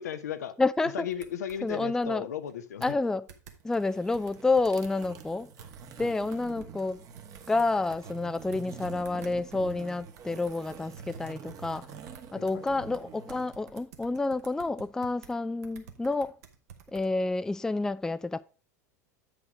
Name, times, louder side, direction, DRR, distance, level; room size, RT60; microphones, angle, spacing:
voice 1, 0.0-0.5 0.9-3.0 6.0-6.1 12.3-12.6, left 9 dB, 75° left, 0.8 m, -36 dB
voice 2, 0.6-1.1 1.6-2.3 2.8-3.2 3.6-5.5 6.0-7.0 7.5-11.9 12.3-16.3 16.9-18.4, left 3 dB, 5° left, 0.3 m, -29 dB
sound 1, 1.1-2.2 2.5-2.6 2.8-3.0 3.3-3.6 4.1-5.3 5.6-8.0 8.3-15.3 15.6-17.1, right 7 dB, 70° right, 1.4 m, -52 dB
sound 2, 3.6-13.5, right 6 dB, 40° right, 1.2 m, -46 dB
8.2 x 5.2 x 4.9 m
hypercardioid pair, 80°, 9 cm